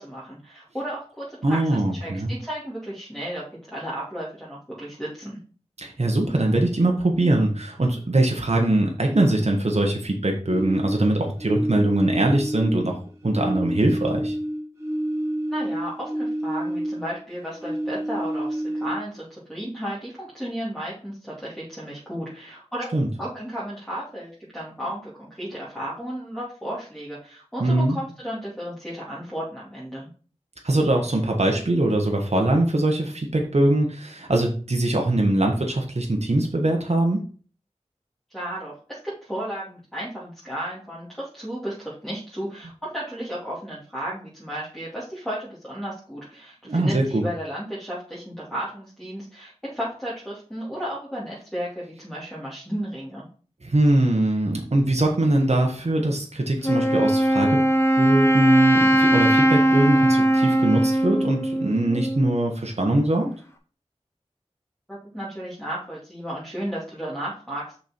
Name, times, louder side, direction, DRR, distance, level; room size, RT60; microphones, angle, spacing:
voice 1, 0.0-5.4 15.5-22.9 23.2-30.1 38.3-53.3 64.9-67.8, equal, 5° left, -8 dB, 2.6 m, -34 dB
voice 2, 1.4-2.3 5.8-13.0 13.2-14.3 22.9-23.1 27.6-28.0 30.6-37.2 46.6-47.2 53.6-57.7 58.0-63.3, right 1 dB, 65° right, 1 dB, 1.4 m, -22 dB
sound 1, 10.5-13.0 13.3-17.2 17.5-19.2, right 1 dB, 25° right, 2.5 m, -29 dB
Wind instrument woodwind instrument, 56.6-62.4, right 1 dB, 20° left, 1.0 m, -20 dB
6.1 x 4.8 x 4.4 m, 0.40 s
wide cardioid pair, 45°, 12 cm